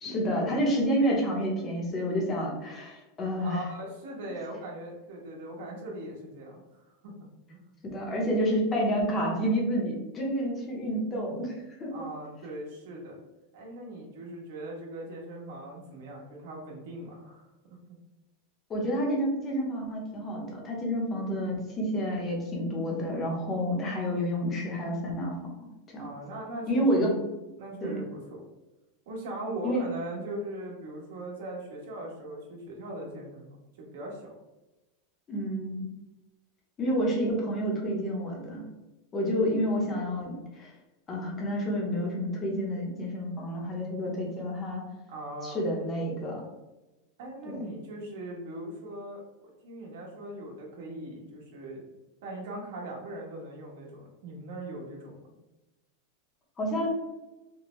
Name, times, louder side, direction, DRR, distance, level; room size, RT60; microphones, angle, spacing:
voice 1, 0.0-3.6 7.9-11.9 18.7-25.4 25.9-26.1 26.7-27.1 27.8-27.9 29.6-29.8 35.3-35.9 36.8-38.6 39.1-40.7 41.1-44.8 45.4-46.4 47.4-47.6 56.6-56.9, equal, 20° left, -1 dB, 0.8 m, -29 dB
voice 2, 3.4-7.8 11.9-13.2 13.5-17.5 26.0-26.9 27.6-28.4 29.1-34.3 45.1-45.6 47.2-51.8 52.2-55.1, right 1 dB, 70° right, -2 dB, 1.3 m, -40 dB
4.3 x 2.1 x 3.0 m, 1.0 s
supercardioid pair, 175°, 0 cm